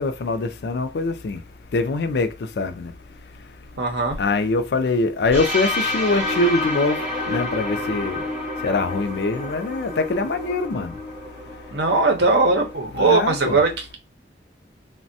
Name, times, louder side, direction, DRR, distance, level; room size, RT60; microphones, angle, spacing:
voice 1, 0.0-1.4 1.7-2.9 4.2-7.0 7.3-8.2 8.6-10.9 13.0-13.6, left 3 dB, 65° left, 0.4 m, -23 dB
voice 2, 3.8-4.2 11.7-14.0, right 3 dB, 70° right, 0.8 m, -20 dB
sound 1, 5.3-13.1, left 1 dB, 5° right, 1.8 m, -29 dB
3.3 x 2.1 x 2.6 m
head